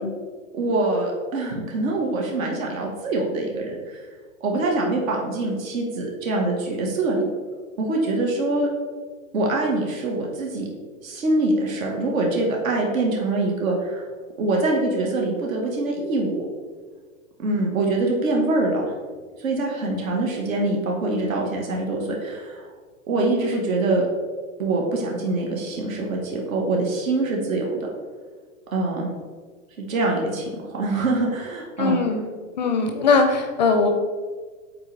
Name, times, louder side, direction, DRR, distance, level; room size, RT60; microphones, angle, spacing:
voice 1, 0.5-4.1 4.4-7.2 7.8-8.7 9.3-10.7 11.0-14.1 14.4-16.4 17.4-18.9 19.4-22.7 23.1-24.1 24.6-27.9 28.7-29.1 29.8-32.0, right 2 dB, 70° right, -1 dB, 1.5 m, -24 dB
voice 2, 31.8-32.3 32.6-34.0, left 4 dB, 35° left, 4 dB, 0.4 m, -20 dB
7.6 x 4.2 x 3.3 m, 1.5 s
supercardioid pair, 170°, 42 cm